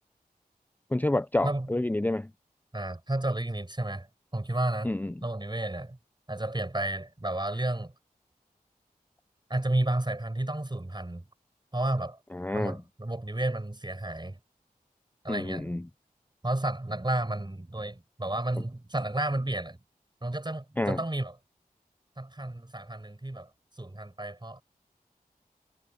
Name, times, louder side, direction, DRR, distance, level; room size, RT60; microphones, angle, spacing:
voice 1, 0.9-2.3 4.8-5.1 12.3-12.8 15.3-15.8 20.8-21.0, left 1 dB, 10° left, 0.5 m, -28 dB
voice 2, 2.7-4.1 4.3-4.9 5.2-6.0 6.3-7.9 9.5-11.2 11.7-12.2 12.5-14.4 15.2-15.7 16.4-19.8 20.2-21.3 22.2-23.5 23.8-24.6, right 1 dB, 30° right, 6.0 m, -31 dB
cardioid pair, 45°, 15 cm